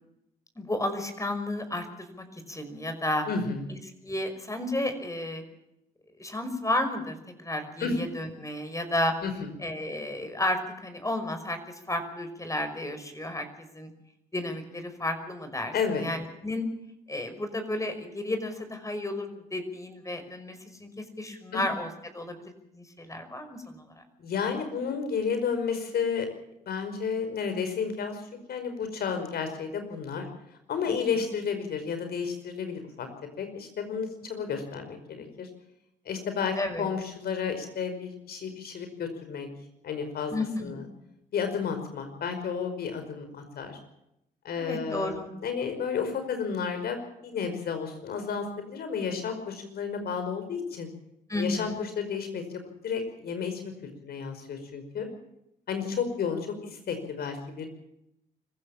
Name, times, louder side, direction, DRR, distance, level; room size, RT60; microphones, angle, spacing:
voice 1, 0.6-3.3 4.0-5.4 6.2-9.1 9.6-13.9 14.3-16.7 17.1-21.9 22.1-24.0 30.9-31.0 36.6-36.9 40.3-40.9 44.6-45.3 51.3-51.8, left 1 dB, 20° left, 8 dB, 5.5 m, -32 dB
voice 2, 3.3-3.7 7.8-8.0 9.2-9.5 15.7-16.1 21.5-21.6 24.2-26.3 26.7-28.2 28.5-30.3 30.7-33.1 33.4-35.5 36.1-39.5 39.8-40.3 40.6-40.8 41.3-43.8 44.4-47.0 47.2-50.9 51.4-53.6 54.0-55.1 55.7-57.7, left 6 dB, 65° left, 7 dB, 5.2 m, -32 dB
25.5 x 15.0 x 7.3 m, 0.82 s
hypercardioid pair, 55°, 18 cm